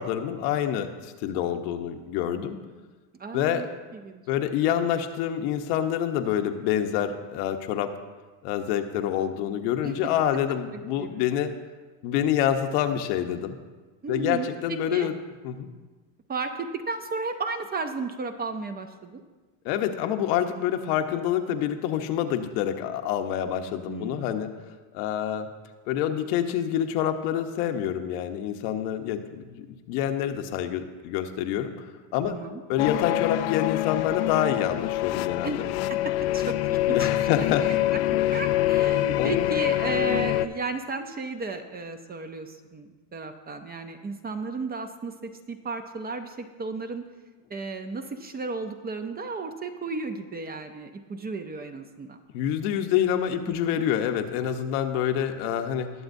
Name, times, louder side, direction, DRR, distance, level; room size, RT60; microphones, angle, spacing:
voice 1, 0.0-2.6 3.3-3.7 4.3-7.9 8.4-11.5 12.0-13.6 14.1-15.1 15.4-15.7 19.6-24.5 24.9-25.5 25.9-31.9 32.1-32.4 32.7-35.6 36.9-37.7 39.2-39.5 52.3-55.9, left 10 dB, 75° left, 6 dB, 1.1 m, -27 dB
voice 2, 3.2-3.7 3.9-4.2 9.8-9.9 10.7-11.2 14.0-15.1 16.3-19.2 23.9-24.5 32.3-32.6 35.4-35.6 36.3-37.3 38.3-47.0 47.5-52.2 53.5-53.8, right 3 dB, 20° right, 7 dB, 0.5 m, -34 dB
sound 1, 32.8-40.5, left 14 dB, 55° left, 0.5 m, -25 dB
20.0 x 7.2 x 2.7 m, 1.3 s
supercardioid pair, 125°, 48 cm